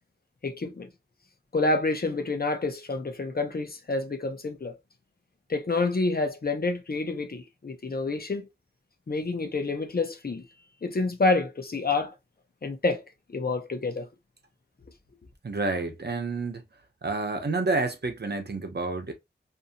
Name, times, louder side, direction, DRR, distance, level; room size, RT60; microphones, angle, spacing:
voice 1, 0.4-0.9 1.5-4.8 5.5-8.5 9.1-10.4 10.8-12.1 12.6-13.0 13.3-14.1, left 3 dB, 55° left, 0.7 m, -28 dB
voice 2, 15.4-16.6 17.0-19.1, right 3 dB, 65° right, 0.8 m, -29 dB
2.7 x 2.6 x 2.7 m
wide cardioid pair, 45°, 19 cm